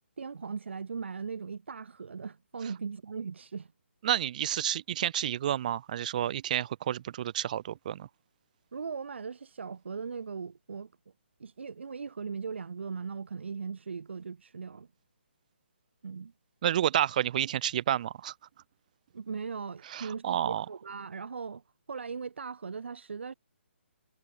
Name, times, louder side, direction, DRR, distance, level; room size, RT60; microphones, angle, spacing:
voice 1, 0.2-3.7 8.7-10.9 11.4-14.9 16.0-16.3 19.1-21.6 21.9-23.3, right 5 dB, 70° right, 7.4 m, -39 dB
voice 2, 4.0-8.1 16.6-18.3 19.9-20.6, right 11 dB, 40° right, 1.8 m, -30 dB
hypercardioid pair, 155°, 7 cm